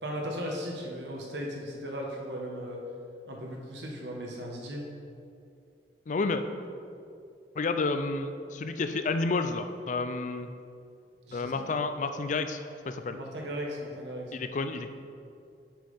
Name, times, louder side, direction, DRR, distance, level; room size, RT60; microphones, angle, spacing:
voice 1, 0.0-2.8 3.3-4.9 11.3-11.7 13.1-14.4, equal, 80° right, -1 dB, 1.4 m, -37 dB
voice 2, 6.1-6.4 7.6-10.5 11.3-12.6 12.9-13.2 14.3-14.9, left 3 dB, 45° left, 9 dB, 0.4 m, -30 dB
7.4 x 5.3 x 5.5 m, 2.5 s
head